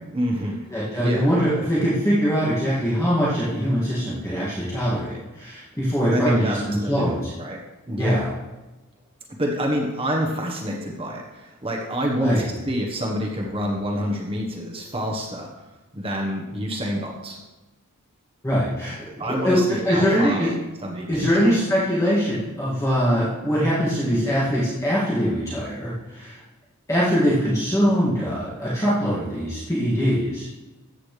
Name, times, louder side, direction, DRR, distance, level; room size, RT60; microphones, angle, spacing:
voice 1, 0.1-0.6 1.0-1.2 6.0-7.6 7.9-8.3 9.4-15.5 15.9-17.4 19.2-20.5 20.8-21.5, equal, 25° right, -1 dB, 1.2 m, -27 dB
voice 2, 0.7-7.3 8.0-8.3 12.2-12.4 18.4-19.1 19.4-20.5 21.1-26.4 26.9-30.5, equal, 15° left, -9 dB, 2.2 m, -22 dB
13.5 x 8.5 x 3.3 m, 1.1 s
head